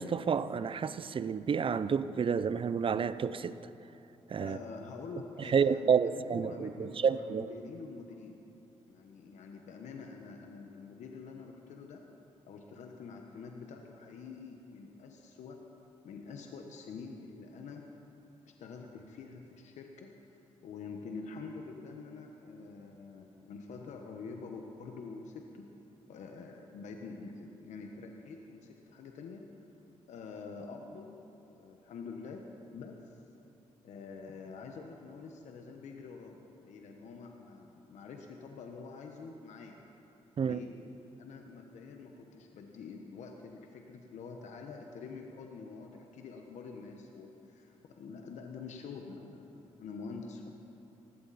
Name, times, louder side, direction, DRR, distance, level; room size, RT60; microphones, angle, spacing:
voice 1, 0.0-3.5 4.3-4.6 5.5-7.5 40.4-40.6, right 6 dB, 45° right, 0.6 m, -30 dB
voice 2, 4.4-8.4 8.9-12.1 12.5-15.6 16.0-17.9 18.4-25.7 26.1-29.5 30.1-31.2 31.5-32.4 32.7-33.2 33.8-39.8 40.4-40.8 41.2-50.6, left 4 dB, 75° left, 1.2 m, -46 dB
18.5 x 16.0 x 4.2 m
cardioid pair, 70°, 12 cm